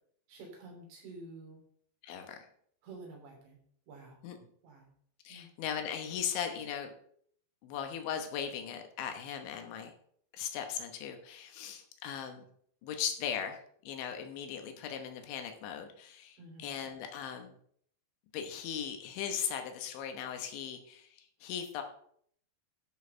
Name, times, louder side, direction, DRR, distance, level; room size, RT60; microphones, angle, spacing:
voice 1, 0.3-1.6 2.8-3.6 3.9-4.2 4.6-4.9 5.3-5.5 16.4-16.8, right 2 dB, 75° right, 0 dB, 5.7 m, -49 dB
voice 2, 2.0-2.5 4.2-4.4 5.2-6.9 7.6-9.9 10.3-12.5 12.8-17.6 18.3-21.8, left 8 dB, 80° left, 5 dB, 3.5 m, -38 dB
12.0 x 6.4 x 5.6 m, 0.64 s
omnidirectional pair, 5.3 m